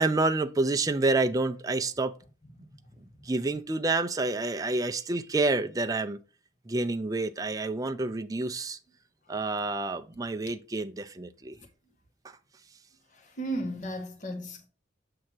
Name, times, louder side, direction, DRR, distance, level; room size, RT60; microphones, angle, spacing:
voice 1, 0.0-2.1 3.2-6.2 6.7-8.8 9.3-11.6, right 2 dB, 20° right, 0.4 m, -28 dB
voice 2, 13.1-14.7, right 1 dB, 40° left, 1.2 m, -35 dB
7.6 x 2.8 x 6.0 m
head